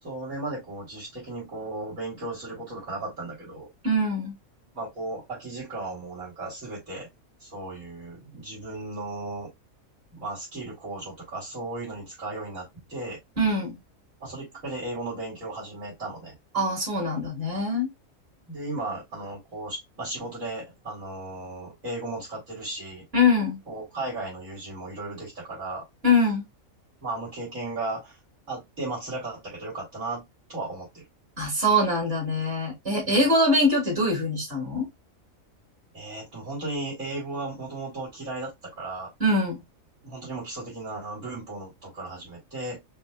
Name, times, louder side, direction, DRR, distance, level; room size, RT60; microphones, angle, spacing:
voice 1, 0.0-3.7 4.7-7.1 7.4-9.5 10.1-13.2 14.2-16.3 18.5-23.0 23.7-25.8 27.0-28.2 28.5-30.2 30.5-31.0 33.0-33.2 35.9-39.1 40.0-42.8, right 2 dB, 70° right, 3.6 m, -35 dB
voice 2, 3.8-4.3 13.4-13.8 16.5-17.9 23.1-23.6 26.0-26.4 31.4-34.9 39.2-39.6, left 1 dB, 45° right, 3.2 m, -23 dB
5.6 x 3.3 x 2.4 m
omnidirectional pair, 1.4 m